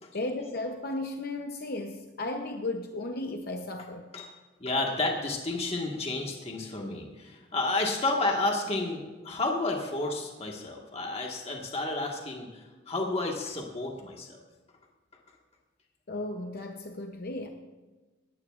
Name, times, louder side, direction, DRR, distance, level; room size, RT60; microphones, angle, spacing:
voice 1, 0.1-4.1 16.1-17.5, left 2 dB, 50° left, 4 dB, 0.8 m, -35 dB
voice 2, 4.6-14.4, left 2 dB, 30° left, 0 dB, 1.6 m, -31 dB
19.0 x 14.5 x 2.5 m, 1.2 s
head